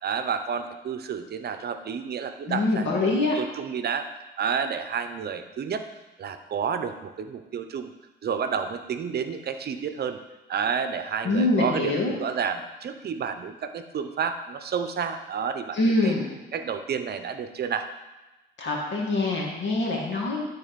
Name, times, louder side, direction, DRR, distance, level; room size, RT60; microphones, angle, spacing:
voice 1, 0.0-4.1 4.4-5.8 6.2-7.9 8.2-10.2 10.5-16.1 16.5-17.9, right 6 dB, 55° right, 9 dB, 0.8 m, -30 dB
voice 2, 2.5-3.4 11.2-12.1 15.7-16.3 18.6-20.4, left 2 dB, 65° left, -1 dB, 1.8 m, -24 dB
12.0 x 4.1 x 5.2 m, 1.1 s
cardioid pair, 90°, 20 cm